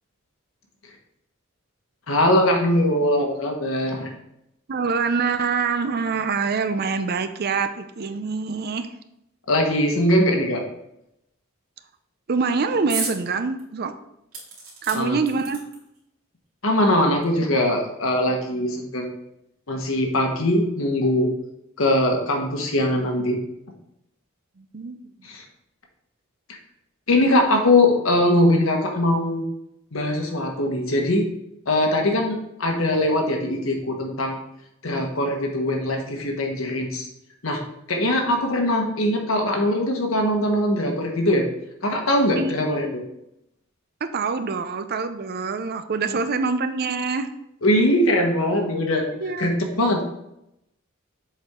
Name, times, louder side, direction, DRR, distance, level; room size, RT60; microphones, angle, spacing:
voice 1, 2.1-4.1 9.5-10.6 14.9-15.2 16.6-19.2 19.7-21.3 21.8-23.4 25.2-25.4 27.1-29.4 29.9-31.3 31.7-34.4 34.8-37.1 37.4-37.6 37.9-41.5 41.8-43.0 47.6-49.1 49.4-50.0, left 1 dB, 85° left, 2 dB, 1.3 m, -21 dB
voice 2, 4.7-8.9 12.3-13.9 14.8-15.6 24.6-25.0 42.4-42.9 44.0-47.3 49.2-49.6, right 4 dB, 50° right, 10 dB, 0.5 m, -25 dB
sound 1, 12.9-13.2 13.6-13.7 14.3-16.0 16.9-17.0 17.2-17.3, right 4 dB, 90° right, 2.5 m, -33 dB
7.2 x 4.4 x 3.7 m, 0.82 s
head